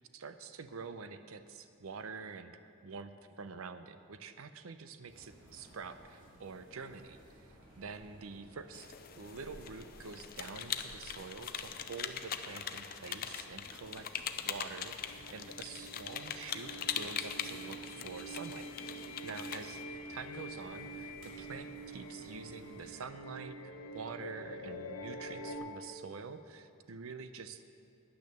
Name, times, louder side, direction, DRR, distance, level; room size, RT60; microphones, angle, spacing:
voice 1, 0.1-19.8 20.1-27.6, right 5 dB, 80° right, 10 dB, 0.6 m, -47 dB
sound 1, 5.1-23.0, equal, 60° right, 2.8 m, -58 dB
sound 2, 8.7-19.8, left 8 dB, 45° left, 0.5 m, -42 dB
sound 3, 15.0-25.6, equal, 85° left, 0.9 m, -46 dB
10.5 x 9.3 x 6.7 m, 2.6 s
head